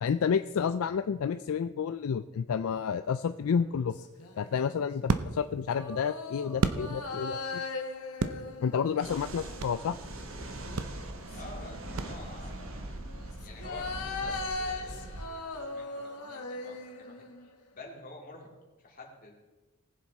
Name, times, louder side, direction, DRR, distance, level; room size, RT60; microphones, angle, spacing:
voice 1, 0.0-4.0 4.4-7.6 8.6-10.0, left 6 dB, 70° left, 11 dB, 0.3 m, -30 dB
sound 1, 3.6-4.8 5.7-10.2 10.9-12.1 13.0-17.6 18.0-18.1, left 3 dB, 90° left, 1.4 m, -40 dB
sound 2, 3.9-7.4 7.7-9.9 10.3-10.4 10.7-12.6, right 4 dB, 80° right, 0.7 m, -34 dB
sound 3, 9.0-15.3, right 1 dB, 60° right, 1.3 m, -41 dB
voice 2, 11.3-18.5 18.8-19.4, left 2 dB, 40° left, -1 dB, 2.5 m, -49 dB
19.5 x 7.4 x 4.2 m, 1.2 s
head